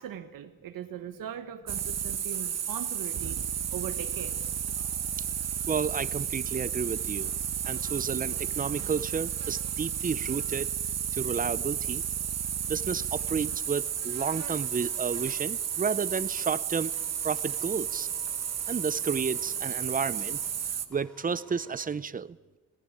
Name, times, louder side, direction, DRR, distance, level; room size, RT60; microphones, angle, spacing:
voice 1, 0.0-3.4 3.7-4.5, right 9 dB, 85° right, 8 dB, 1.3 m, -40 dB
sound 1, 1.7-20.9, right 8 dB, 50° right, 1.4 m, -32 dB
voice 2, 5.7-7.3 7.6-10.8 11.1-12.0 12.7-16.9 17.2-18.1 18.7-20.4 20.9-22.4, right 6 dB, 25° right, 18 dB, 0.6 m, -31 dB
sound 2, 14.2-21.9, equal, 5° left, 4.9 m, -57 dB
20.0 x 17.0 x 10.0 m, 1.2 s
cardioid pair, 125°, 33 cm